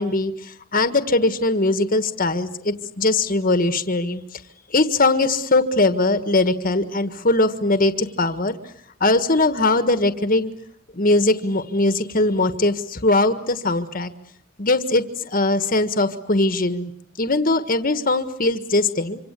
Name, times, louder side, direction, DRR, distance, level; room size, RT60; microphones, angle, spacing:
voice 1, 0.0-4.4 4.7-8.7 9.0-10.5 10.9-14.1 14.6-16.9 17.2-19.2, left 2 dB, 40° left, 10 dB, 1.5 m, -20 dB
26.0 x 26.0 x 8.3 m, 0.68 s
head